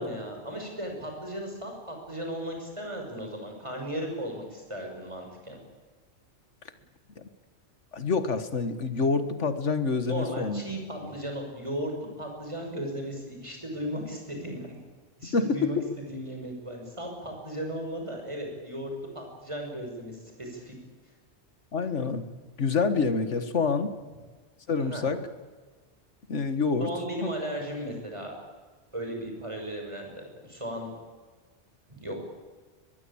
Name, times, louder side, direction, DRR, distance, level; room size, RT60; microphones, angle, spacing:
voice 1, 0.0-5.6 10.1-14.8 15.2-15.8 16.1-20.8 24.8-25.1 26.8-28.3 28.9-30.9 31.9-32.2, equal, 25° right, 2 dB, 6.4 m, -36 dB
voice 2, 7.9-10.6 11.0-11.1 15.3-15.7 21.7-24.0 24.7-25.2 26.3-26.9 27.2-27.3, left 4 dB, 85° left, 11 dB, 1.9 m, -27 dB
23.0 x 21.5 x 8.7 m, 1.4 s
omnidirectional pair, 1.2 m